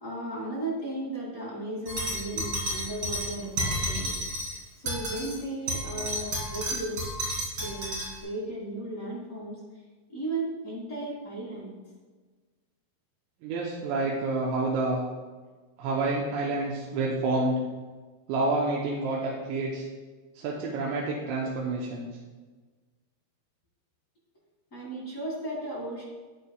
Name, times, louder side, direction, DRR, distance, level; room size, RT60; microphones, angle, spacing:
voice 1, 0.0-4.2 4.8-7.1 7.6-9.6 10.1-11.7 24.7-26.0, right 2 dB, 40° left, -6 dB, 1.2 m, -35 dB
sound 1, 1.8-4.6 4.8-5.3 5.7-8.1, equal, 30° right, 2.2 m, -31 dB
voice 2, 13.4-15.1 15.8-17.6 18.3-19.9 20.3-22.1, right 2 dB, 85° right, -4 dB, 3.2 m, -28 dB
9.8 x 9.6 x 2.3 m, 1.3 s
omnidirectional pair, 5.0 m